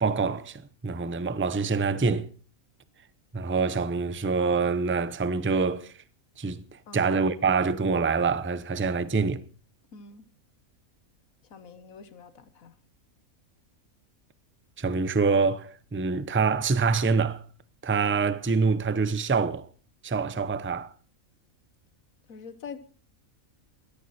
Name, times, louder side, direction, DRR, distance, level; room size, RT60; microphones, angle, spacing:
voice 1, 0.0-2.3 3.3-5.9 6.4-9.4 14.8-17.4 17.8-19.7 20.0-20.9, right 4 dB, 15° right, 0.4 m, -26 dB
voice 2, 6.9-7.2 9.9-10.2 11.4-12.8 22.3-22.8, left 5 dB, 75° left, 1.6 m, -45 dB
17.0 x 14.0 x 4.2 m
omnidirectional pair, 1.4 m